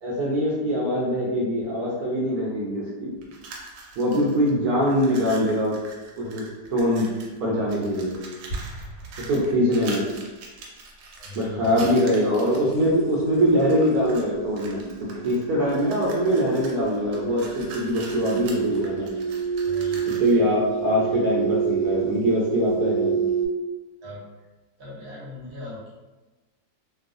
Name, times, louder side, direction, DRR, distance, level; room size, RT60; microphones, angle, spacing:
voice 1, 0.0-3.1 4.0-5.8 6.2-6.4 6.7-7.1 7.4-8.2 9.3-10.0 11.3-14.8 15.2-19.1 20.1-23.2, equal, 70° right, -4 dB, 1.0 m, -23 dB
sound 1, 3.2-4.5 4.8-7.4 7.7-12.8 13.4-14.3 14.6-20.4, right 3 dB, 90° right, 1.3 m, -43 dB
sound 2, 8.5-10.1, right 2 dB, 40° left, 1.3 m, -37 dB
voice 2, 11.2-11.9 19.6-20.3 24.0-24.2 24.8-25.9, left 2 dB, 50° right, -7 dB, 0.9 m, -39 dB
sound 3, 12.7-23.5, right 7 dB, 60° left, 1.1 m, -29 dB
3.0 x 2.0 x 2.5 m, 1.2 s
omnidirectional pair, 1.9 m